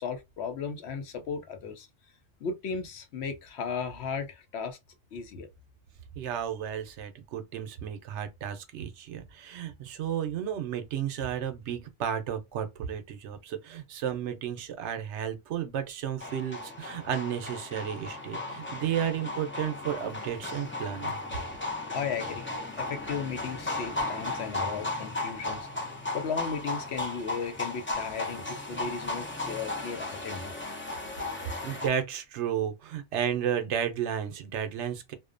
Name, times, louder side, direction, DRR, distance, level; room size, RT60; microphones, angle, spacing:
voice 1, 0.0-1.9 2.4-4.8 5.1-5.5 21.9-25.7 26.1-30.5, left 6 dB, 70° left, 0.8 m, -35 dB
voice 2, 6.2-21.2 31.3-35.1, right 9 dB, 75° right, 0.9 m, -33 dB
sound 1, 16.2-31.9, left 2 dB, 20° left, 0.3 m, -35 dB
2.6 x 2.1 x 2.4 m
omnidirectional pair, 1.2 m